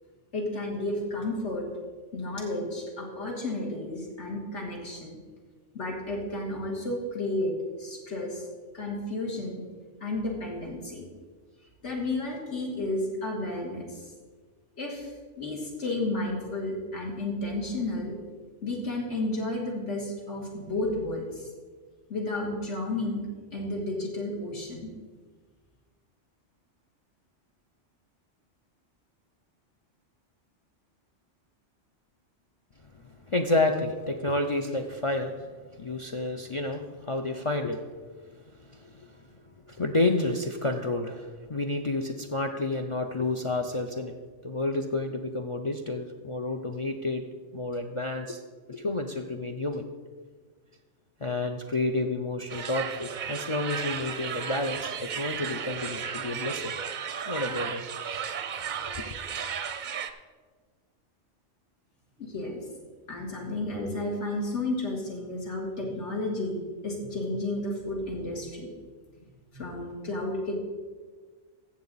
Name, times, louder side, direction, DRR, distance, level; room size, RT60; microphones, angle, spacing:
voice 1, 0.3-1.7 2.1-5.2 5.7-7.5 7.8-8.4 8.7-9.6 10.0-11.1 11.8-14.1 14.8-18.2 18.6-21.5 22.1-24.9 62.2-62.6 63.1-66.6 66.8-68.7 69.5-70.6, left 2 dB, 70° left, -1 dB, 2.4 m, -32 dB
voice 2, 33.3-35.5 35.8-37.8 38.3-38.4 38.7-39.2 39.7-44.2 44.4-47.3 47.5-48.4 48.7-49.9 51.2-56.7 57.3-57.8 58.9-59.0, left 2 dB, 45° left, 6 dB, 0.4 m, -30 dB
sound 1, 52.5-60.1, right 7 dB, 50° right, 0.6 m, -34 dB
14.5 x 7.4 x 4.0 m, 1.5 s
omnidirectional pair, 1.2 m